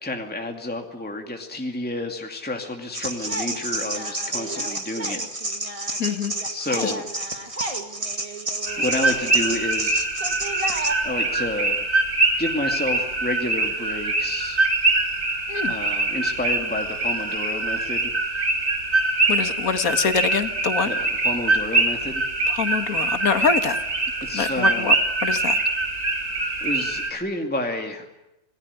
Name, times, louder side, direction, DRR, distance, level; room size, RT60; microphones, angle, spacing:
voice 1, 0.0-5.2 6.5-7.1 8.8-10.7 11.0-11.8 12.4-14.6 15.7-18.1 20.8-22.2 24.2-24.9 26.6-28.1, left 1 dB, 5° left, 3 dB, 2.3 m, -30 dB
sound 1, 2.9-10.9, right 2 dB, 20° right, 2.4 m, -30 dB
voice 2, 6.0-6.3 6.8-6.9 7.6-7.8 15.5-15.7 19.3-20.9 22.5-23.8 24.3-24.9 25.2-25.6, left 6 dB, 65° left, 9 dB, 2.1 m, -24 dB
sound 2, 8.7-27.1, right 2 dB, 75° right, 4.5 m, -24 dB
28.0 x 19.5 x 9.8 m, 0.91 s
omnidirectional pair, 1.6 m